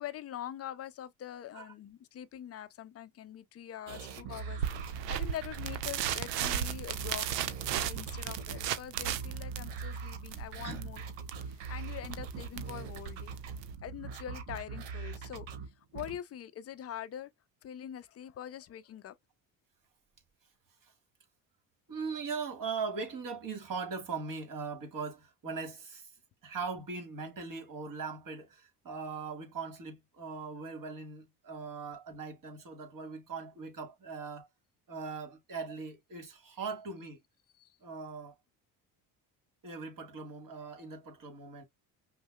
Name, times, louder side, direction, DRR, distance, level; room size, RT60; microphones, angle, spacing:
voice 1, 0.0-13.3 13.8-15.5 15.9-17.3 17.6-19.2 37.6-37.8, left 10 dB, 30° left, 0.5 m, -44 dB
sound 1, 3.9-16.2, right 5 dB, 60° right, 1.0 m, -42 dB
sound 2, 4.6-13.8, right 11 dB, 90° right, 0.6 m, -36 dB
voice 2, 21.9-26.1 26.4-34.5 34.9-37.2 37.8-38.4 39.6-41.6, right 5 dB, 40° right, 1.6 m, -40 dB
5.4 x 2.0 x 2.3 m
hypercardioid pair, 60°, 49 cm